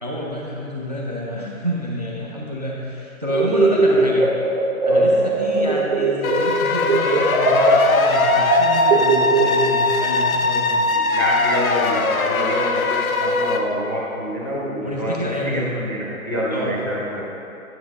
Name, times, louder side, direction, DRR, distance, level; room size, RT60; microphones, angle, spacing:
voice 1, 0.0-4.3 4.9-10.8 14.8-15.7 16.5-16.8, left 1 dB, 30° right, -3 dB, 0.5 m, -28 dB
sound 1, 3.3-6.6 6.8-9.9, right 2 dB, 55° right, 1.0 m, -19 dB
sound 2, 6.2-13.6, left 3 dB, 75° left, 0.7 m, -21 dB
voice 2, 10.9-15.1 15.4-17.2, equal, 15° left, -8 dB, 0.6 m, -27 dB
9.4 x 5.7 x 3.4 m, 2.7 s
figure-of-eight pair, 155°, 43 cm